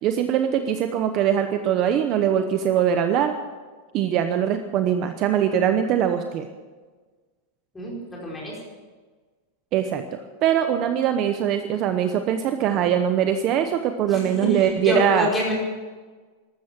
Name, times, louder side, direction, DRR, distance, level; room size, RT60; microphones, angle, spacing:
voice 1, 0.0-3.3 3.9-6.5 9.7-15.3, right 9 dB, 30° right, 7 dB, 0.9 m, -22 dB
voice 2, 7.7-8.5 14.1-15.5, equal, 10° left, -4 dB, 4.7 m, -27 dB
14.0 x 13.5 x 7.5 m, 1.4 s
supercardioid pair, 170°, 0 cm